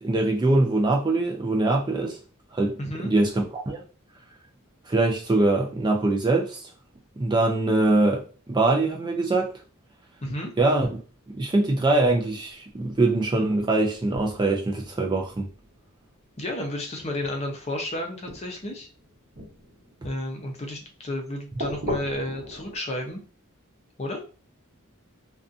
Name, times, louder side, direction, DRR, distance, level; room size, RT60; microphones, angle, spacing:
voice 1, 0.0-2.2 2.5-3.8 4.9-6.6 7.2-8.2 8.5-9.5 10.6-11.0 11.3-15.5, right 2 dB, 20° right, 0.4 m, -23 dB
voice 2, 2.8-3.1 10.2-10.5 16.4-18.9 20.0-23.2 24.0-24.2, left 1 dB, 30° left, 0.6 m, -32 dB
sound 1, 14.1-16.3 17.2-17.8 18.3-20.8 21.6-22.8, equal, 40° right, 0.8 m, -38 dB
2.5 x 2.3 x 2.5 m
head